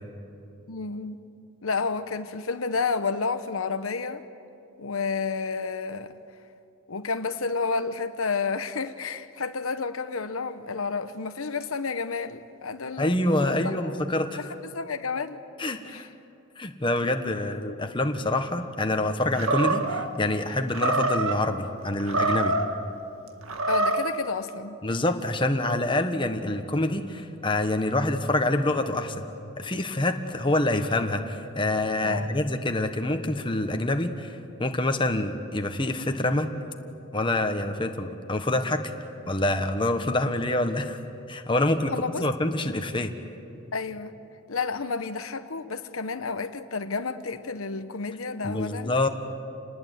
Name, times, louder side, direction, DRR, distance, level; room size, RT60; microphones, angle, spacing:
voice 1, 0.7-1.2 1.6-4.2 4.8-6.1 6.9-14.0 14.7-15.4 15.9-16.1 23.7-24.8 32.0-32.4 41.9-42.3 43.7-44.1 44.5-48.9, left 4 dB, 80° left, 9 dB, 1.1 m, -30 dB
voice 2, 13.0-14.4 15.6-16.0 16.6-22.5 24.8-29.2 29.6-36.5 37.1-38.9 39.3-41.0 41.3-41.9 42.2-43.1 48.4-49.1, left 1 dB, 25° left, 6 dB, 1.4 m, -26 dB
Animal, 19.3-20.1 20.7-21.4 22.0-22.7 23.4-24.1, right 2 dB, 90° right, 1.8 m, -25 dB
28.5 x 20.0 x 9.4 m, 2.8 s
head